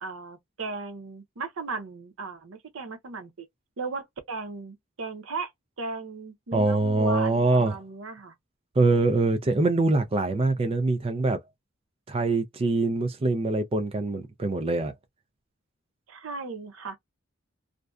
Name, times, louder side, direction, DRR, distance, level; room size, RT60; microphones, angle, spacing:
voice 1, 0.0-3.5 3.8-5.5 5.8-8.3 16.1-17.0, right 3 dB, 75° right, 0.7 m, -36 dB
voice 2, 6.5-7.8 8.8-11.4 12.1-14.9, right 2 dB, 30° right, 0.4 m, -24 dB
2.6 x 2.1 x 2.3 m
head